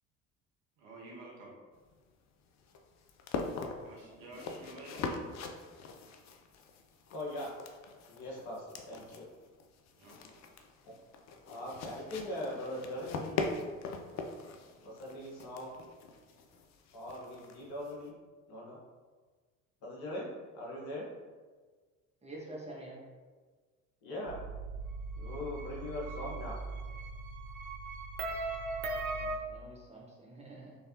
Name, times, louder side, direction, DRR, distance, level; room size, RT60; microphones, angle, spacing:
voice 1, 0.8-1.6 3.8-5.3 9.9-10.4, right 2 dB, 60° right, -2 dB, 1.3 m, -50 dB
sound 1, 1.7-18.1, left 4 dB, 40° left, 0.6 m, -42 dB
voice 2, 7.1-7.5 8.1-9.3 10.8-11.0 11.4-13.4 14.8-15.7 16.9-18.1 18.5-18.8 19.8-21.1 24.0-24.4 25.2-26.6, left 1 dB, 60° left, -4 dB, 1.4 m, -41 dB
voice 3, 22.2-23.1 29.1-30.8, right 1 dB, 15° right, -3 dB, 1.4 m, -47 dB
sound 2, 24.3-29.4, right 3 dB, 85° right, 0.6 m, -39 dB
4.7 x 3.4 x 2.9 m, 1.4 s
hypercardioid pair, 60°, 41 cm